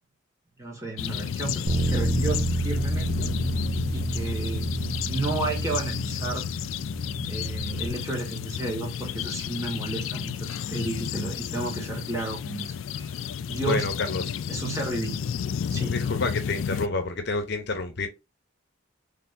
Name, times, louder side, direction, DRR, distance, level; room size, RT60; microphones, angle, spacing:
voice 1, 0.6-3.3 3.9-6.4 7.3-13.1 13.5-13.9 14.5-15.3 15.7-16.0, right 2 dB, 15° right, 1.7 m, -32 dB
sound 1, 1.0-16.9, left 8 dB, 75° left, 0.3 m, -32 dB
Bass guitar, 1.7-7.9, right 2 dB, 50° right, 0.9 m, -29 dB
voice 2, 13.7-14.3 15.9-18.1, left 3 dB, 55° left, 0.9 m, -28 dB
4.2 x 3.4 x 2.7 m
head